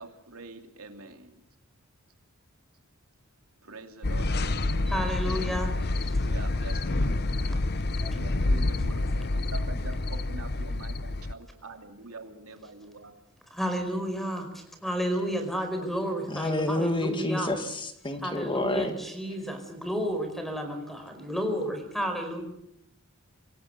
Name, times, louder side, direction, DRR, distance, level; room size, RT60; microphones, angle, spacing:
voice 1, 0.0-1.4 3.6-5.2 6.2-7.4 8.2-13.1 22.0-22.1, right 3 dB, 80° right, 5 dB, 2.9 m, -44 dB
sound 1, 4.0-11.3, left 2 dB, 50° left, 0.9 m, -28 dB
voice 2, 4.9-6.3 8.0-8.2 13.5-17.5 18.2-22.4, equal, ahead, 6 dB, 4.8 m, -32 dB
voice 3, 16.3-18.9, left 1 dB, 25° left, 7 dB, 2.1 m, -29 dB
26.0 x 18.0 x 6.8 m, 0.78 s
head